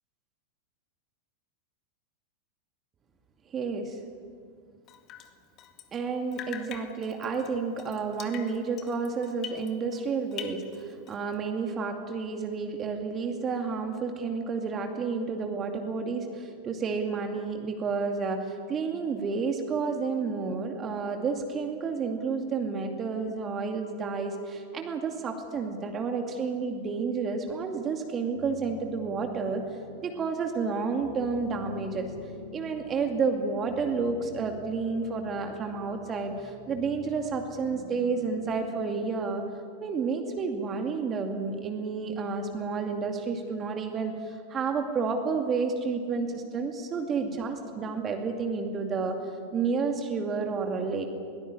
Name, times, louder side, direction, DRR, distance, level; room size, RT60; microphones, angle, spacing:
voice 1, 3.5-4.0 5.9-29.6 30.0-32.1 32.5-39.4 39.8-49.2 49.5-51.1, right 5 dB, 25° right, 4 dB, 2.4 m, -30 dB
Drip, 4.9-6.1 6.3-10.0 10.3-11.3, left 9 dB, 35° left, 2.0 m, -44 dB
sound 1, 28.3-40.1, left 4 dB, 60° left, 2.5 m, -48 dB
22.5 x 19.0 x 9.9 m, 2.1 s
figure-of-eight pair, 90°, 0 cm